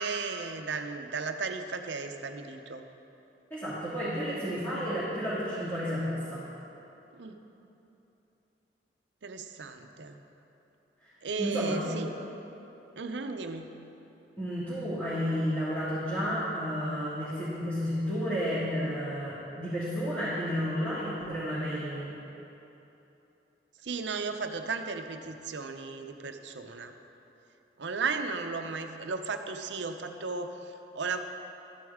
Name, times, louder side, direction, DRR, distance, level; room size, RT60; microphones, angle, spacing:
voice 1, 0.0-2.8 7.1-7.4 9.2-10.2 11.2-12.1 13.0-13.8 23.8-26.9 27.8-31.2, right 4 dB, 75° right, 6 dB, 0.6 m, -35 dB
voice 2, 3.5-6.4 11.0-11.1 11.4-12.0 14.4-22.1, equal, 15° left, -14 dB, 2.0 m, -31 dB
13.0 x 9.4 x 3.6 m, 3.0 s
head